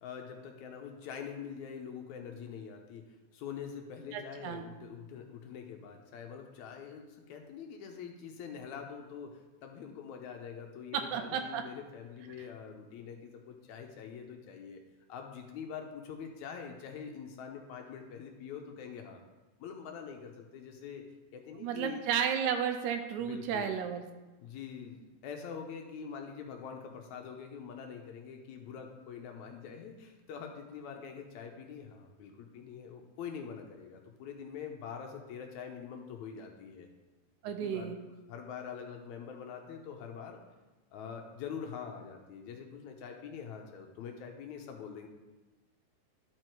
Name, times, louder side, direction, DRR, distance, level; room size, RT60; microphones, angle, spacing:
voice 1, 0.0-3.1 3.3-14.8 15.1-19.2 19.6-21.0 21.3-22.0 23.3-23.7 24.4-36.9 37.6-37.9 38.3-40.4 40.9-45.1, left 7 dB, 75° left, 3 dB, 2.0 m, -44 dB
voice 2, 4.1-4.7 10.9-11.6 12.4-12.5 21.6-24.0 37.4-38.0, right 8 dB, 80° right, 6 dB, 2.0 m, -33 dB
11.5 x 4.7 x 4.5 m, 1.1 s
omnidirectional pair, 3.6 m